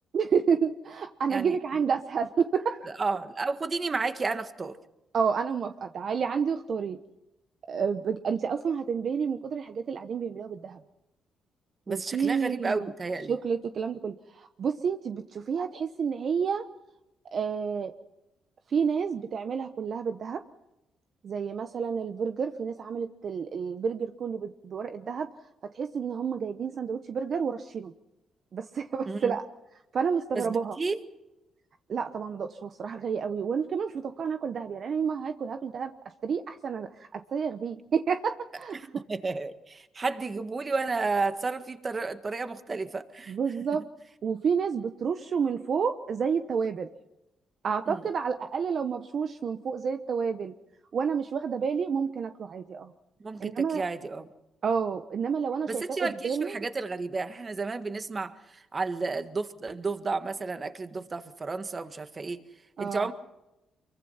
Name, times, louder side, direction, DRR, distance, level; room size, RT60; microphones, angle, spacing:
voice 1, 0.1-2.9 5.1-7.0 7.7-10.8 11.9-12.9 13.3-16.6 17.3-17.9 18.7-20.4 21.2-25.3 25.7-27.9 28.5-29.4 29.9-30.8 31.9-35.9 36.2-38.8 43.3-43.8 44.2-46.9 47.6-50.5 50.9-52.9 53.4-53.8 54.6-56.7 62.8-63.1, right 6 dB, 55° right, 8 dB, 1.0 m, -30 dB
voice 2, 2.9-4.8 11.9-13.4 29.1-29.4 30.3-31.0 38.7-43.4 47.9-48.1 53.2-54.3 55.7-62.4 62.8-63.1, right 3 dB, 30° right, 9 dB, 1.7 m, -32 dB
25.0 x 23.0 x 5.8 m, 0.94 s
cardioid pair, 90°, 0 cm